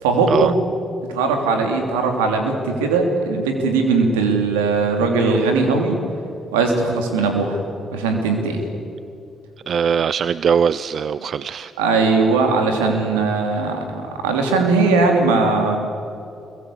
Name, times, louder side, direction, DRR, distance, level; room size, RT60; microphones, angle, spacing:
voice 1, 0.0-0.6 1.1-6.0 6.5-7.6 7.9-8.6 11.8-15.8, right 4 dB, 85° right, 4 dB, 3.0 m, -19 dB
voice 2, 9.7-11.7, right 7 dB, 60° right, 16 dB, 0.5 m, -20 dB
25.5 x 22.0 x 8.4 m, 2.7 s
hypercardioid pair, 45°, 0 cm